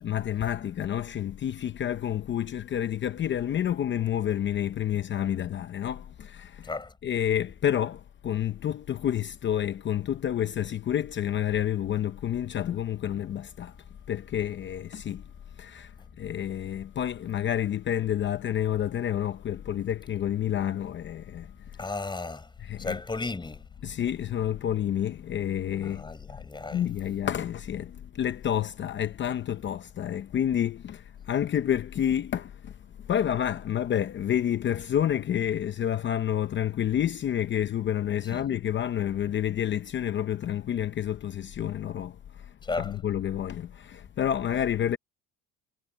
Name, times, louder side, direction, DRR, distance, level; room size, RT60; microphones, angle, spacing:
voice 1, 0.0-13.8 14.1-21.9 22.6-23.0 23.8-26.0 26.4-45.0, left 10 dB, 35° left, 0.7 m, -29 dB
voice 2, 6.6-6.9 21.8-22.5 22.8-23.7 25.8-26.9 38.3-38.5 42.6-43.0, left 3 dB, 15° left, 4.9 m, -34 dB
cardioid pair, 150°, 31 cm